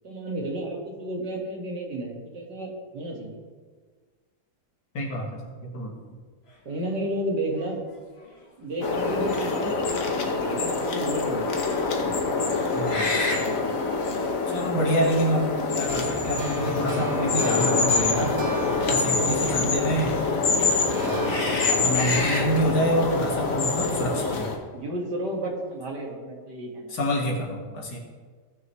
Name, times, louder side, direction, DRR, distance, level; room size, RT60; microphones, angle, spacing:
voice 1, 0.0-3.4 6.7-7.8 8.6-11.5 18.8-19.5 20.8-21.2 23.7-24.4 24.7-27.0, right 1 dB, 75° right, -1 dB, 2.4 m, -32 dB
voice 2, 4.9-5.9 12.7-13.6 14.5-18.4 18.9-20.2 20.9-21.3 21.7-24.5 26.9-28.0, equal, 75° left, -1 dB, 2.3 m, -27 dB
sound 1, 7.6-7.7 8.2-8.4 12.8-13.4 14.7-14.8 15.8-16.6 18.5-18.7 21.2-22.5, left 2 dB, 40° left, 1.6 m, -30 dB
sound 2, 8.8-24.5, left 4 dB, 55° left, 1.5 m, -25 dB
sound 3, 15.9-20.4 20.9-24.0, right 4 dB, 55° right, 1.8 m, -37 dB
17.5 x 6.4 x 3.2 m, 1.5 s
omnidirectional pair, 1.9 m